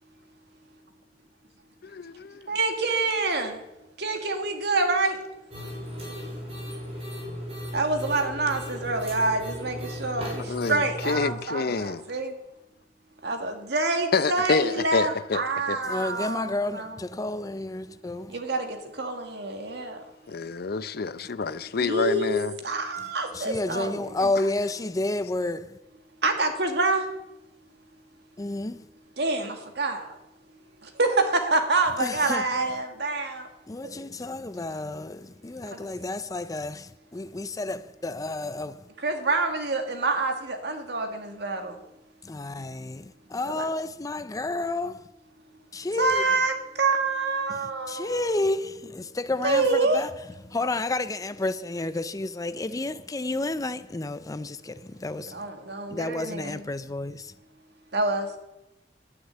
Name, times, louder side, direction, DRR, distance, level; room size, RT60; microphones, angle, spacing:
voice 1, 1.9-2.6 10.5-12.0 14.1-15.4 15.7-15.8 20.3-22.5, left 4 dB, 60° left, 0.6 m, -27 dB
voice 2, 2.5-3.6 4.0-5.2 7.7-12.3 13.2-16.9 18.3-20.0 21.8-22.3 22.6-24.3 26.2-27.1 29.2-30.2 30.8-33.5 34.0-34.1 39.0-41.8 43.4-43.7 46.0-48.5 49.4-50.0 55.1-56.7 57.9-58.3, right 3 dB, 70° right, 2.1 m, -27 dB
sound 1, 5.5-11.3, equal, 35° right, 6.0 m, -36 dB
voice 3, 15.8-18.4 23.3-25.8 28.4-28.9 32.0-32.6 33.7-38.9 42.2-45.1 45.7-46.2 47.5-50.1 50.5-55.4 55.9-57.3, left 2 dB, 20° left, 0.5 m, -31 dB
11.5 x 10.0 x 9.2 m
head